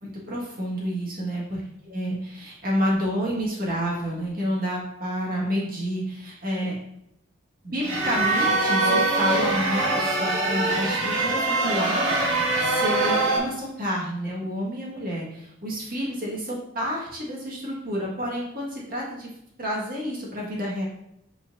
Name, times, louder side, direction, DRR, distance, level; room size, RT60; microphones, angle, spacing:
voice 1, 0.0-1.6 1.9-6.7 7.6-12.1 12.6-19.3 19.6-20.8, equal, 45° right, -4 dB, 2.0 m, -29 dB
sound 1, 7.8-13.4, right 2 dB, 75° right, 2.3 m, -23 dB
8.2 x 4.4 x 2.8 m, 0.80 s
head